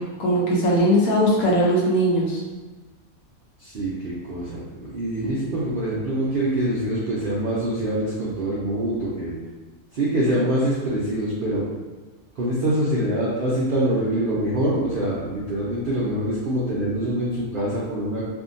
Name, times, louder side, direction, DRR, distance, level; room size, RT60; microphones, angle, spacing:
voice 1, 0.0-2.4, equal, 80° left, -4 dB, 1.2 m, -20 dB
voice 2, 3.6-9.3 9.9-11.6 12.4-18.2, right 1 dB, 80° right, -6 dB, 0.4 m, -25 dB
2.7 x 2.5 x 2.5 m, 1.3 s
omnidirectional pair, 1.5 m